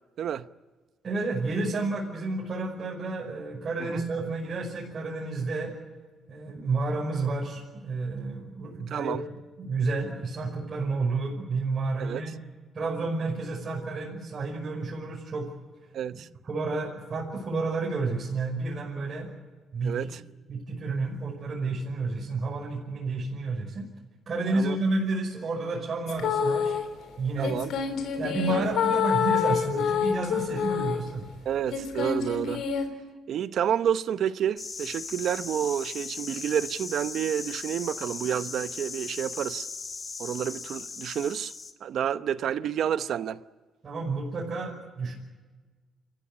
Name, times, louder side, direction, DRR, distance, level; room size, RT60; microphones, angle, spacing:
voice 1, 1.0-5.7 6.3-9.2 9.6-12.4 12.7-15.5 16.1-19.3 19.7-20.1 20.5-23.9 24.3-26.8 27.2-27.5 28.2-31.2 43.8-45.1, right 3 dB, 45° right, 5.7 m, -30 dB
voice 2, 8.9-9.2 12.0-12.2 15.9-16.3 19.8-20.2 24.5-24.8 27.4-27.7 28.5-28.7 31.4-32.7 33.3-39.7 40.2-41.5 41.8-43.4, right 9 dB, 70° right, 0.8 m, -29 dB
sound 1, 26.1-26.8 27.4-31.1 31.7-32.9, left 7 dB, 75° left, 3.4 m, -27 dB
sound 2, 34.6-41.7, left 4 dB, 35° left, 2.0 m, -38 dB
28.0 x 14.5 x 9.6 m
cardioid pair, 90°, 0 cm